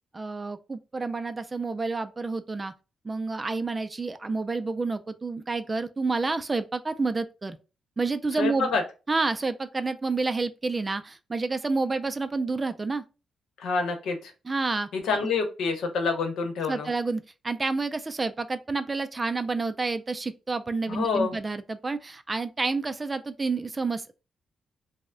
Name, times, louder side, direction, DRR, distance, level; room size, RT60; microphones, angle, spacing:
voice 1, 0.1-2.7 3.0-7.6 8.0-8.7 9.1-13.0 14.5-14.9 16.7-24.1, right 3 dB, 25° right, 0.3 m, -29 dB
voice 2, 8.4-8.8 13.6-14.3 14.9-16.9 20.9-21.3, left 4 dB, 85° left, 0.8 m, -27 dB
3.1 x 2.1 x 3.6 m
cardioid pair, 115°, 0 cm